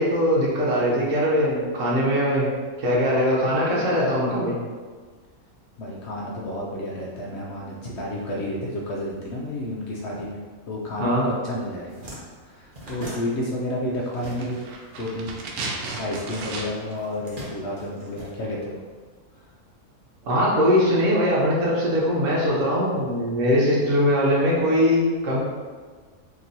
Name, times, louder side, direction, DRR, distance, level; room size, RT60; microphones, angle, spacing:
voice 1, 0.0-2.5 2.8-4.6 11.0-11.3 20.2-25.4, equal, 60° right, -5 dB, 1.2 m, -21 dB
voice 2, 5.8-10.4 10.7-12.0 12.4-14.7 15.0-15.4 16.0-18.8 19.3-19.5, left 1 dB, 65° left, -3 dB, 0.7 m, -31 dB
sound 1, 11.9-14.8 15.1-16.3 16.9-19.0, right 1 dB, 40° right, 0.9 m, -41 dB
sound 2, 14.1-17.0 17.2-17.3, right 3 dB, 85° right, 1.1 m, -34 dB
2.9 x 2.9 x 3.9 m, 1.5 s
omnidirectional pair, 1.5 m